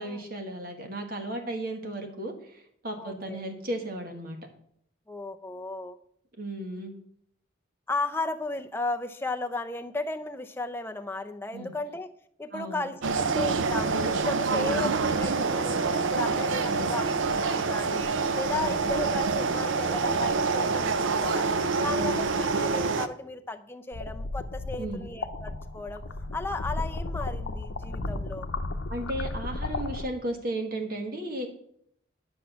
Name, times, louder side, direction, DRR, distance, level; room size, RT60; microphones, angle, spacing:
voice 1, 0.0-4.4 6.4-6.9 11.5-11.7 12.5-12.9 14.5-15.1 16.6-17.0 18.5-18.8 21.8-22.2 24.8-25.1 28.9-31.5, right 1 dB, 45° right, 4 dB, 1.5 m, -35 dB
voice 2, 3.0-3.4 5.1-6.0 7.9-12.1 12.4-18.0 18.3-21.5 21.8-26.0 26.3-28.5, left 2 dB, 10° left, 6 dB, 0.5 m, -35 dB
sound 1, 13.0-23.1, right 4 dB, 75° right, 0.6 m, -26 dB
sound 2, 23.9-30.1, left 2 dB, 85° left, 0.7 m, -34 dB
10.5 x 6.2 x 5.8 m, 0.69 s
head